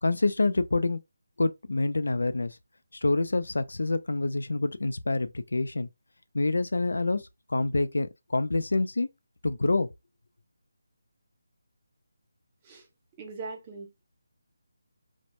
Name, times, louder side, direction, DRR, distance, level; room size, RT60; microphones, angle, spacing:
voice 1, 0.0-1.0 1.4-2.6 2.9-5.9 6.3-7.2 7.5-9.1 9.4-9.9, left 2 dB, 80° left, 0.4 m, -27 dB
voice 2, 13.2-14.0, right 4 dB, 15° right, 0.4 m, -40 dB
2.1 x 2.1 x 2.8 m
figure-of-eight pair, 175°, 0 cm